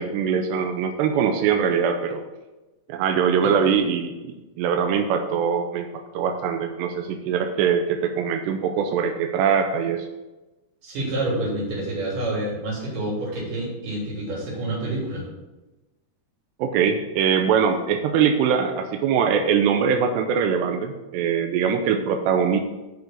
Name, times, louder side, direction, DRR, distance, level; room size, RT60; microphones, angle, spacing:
voice 1, 0.0-2.2 2.9-5.9 6.1-10.1 16.6-22.6, right 7 dB, 90° right, 5 dB, 2.8 m, -22 dB
voice 2, 10.8-15.3, right 1 dB, 55° right, -4 dB, 4.5 m, -28 dB
7.8 x 5.9 x 7.3 m, 1.1 s
omnidirectional pair, 4.9 m